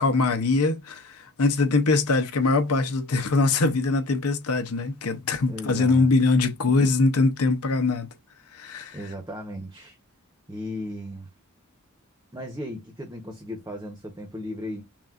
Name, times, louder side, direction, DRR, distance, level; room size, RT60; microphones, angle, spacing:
voice 1, 0.0-8.1 8.5-9.0, left 3 dB, 85° left, 0.8 m, -22 dB
voice 2, 5.5-6.1 6.8-6.9 8.9-10.0 10.5-11.3 12.3-14.8, left 1 dB, 15° right, 1.0 m, -36 dB
5.9 x 2.4 x 2.5 m
head